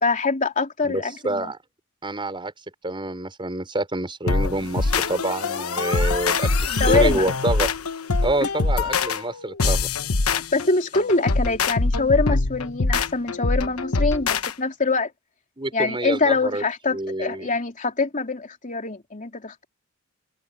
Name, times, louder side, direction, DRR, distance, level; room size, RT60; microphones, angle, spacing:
voice 1, 0.0-1.5 6.8-7.3 10.5-15.1 15.7-19.6, left 3 dB, 35° left, 3.4 m, -24 dB
voice 2, 0.8-1.6 2.0-2.5 2.8-7.7 8.2-9.9 15.6-16.6 16.9-17.5, right 2 dB, 25° right, 5.8 m, -27 dB
sound 1, 4.3-14.5, left 3 dB, 80° left, 1.1 m, -23 dB
head